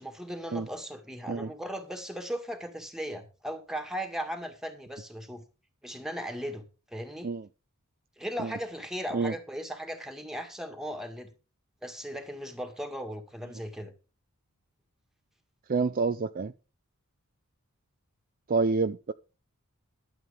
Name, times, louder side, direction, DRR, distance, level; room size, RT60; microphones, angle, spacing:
voice 1, 0.0-5.4 5.8-6.6 6.9-7.3 8.2-11.3 11.8-13.9, equal, ahead, 2.0 m, -37 dB
voice 2, 15.7-16.5 18.5-19.1, right 4 dB, 40° right, 0.4 m, -28 dB
12.5 x 8.0 x 5.1 m
head